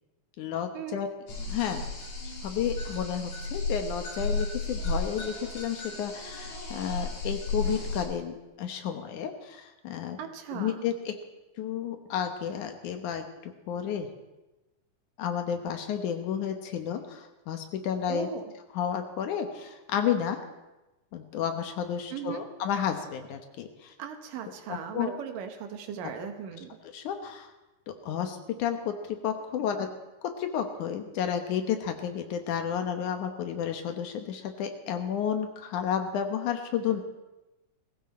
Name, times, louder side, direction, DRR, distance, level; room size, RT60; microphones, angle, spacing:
voice 1, 0.4-1.1 1.5-1.9 2.4-10.2 10.5-11.1 11.6-14.1 15.2-18.3 18.7-20.4 21.1-23.9 24.7-25.2 26.8-27.5 28.0-29.9 30.2-37.0, left 8 dB, 70° left, 6 dB, 2.5 m, -31 dB
sound 1, 1.3-8.0, left 3 dB, 45° left, 4.2 m, -34 dB
voice 2, 10.2-10.8 18.1-18.5 22.1-22.4 24.0-26.8, right 8 dB, 85° right, 6 dB, 2.9 m, -38 dB
18.5 x 15.5 x 4.3 m, 1.0 s
omnidirectional pair, 3.8 m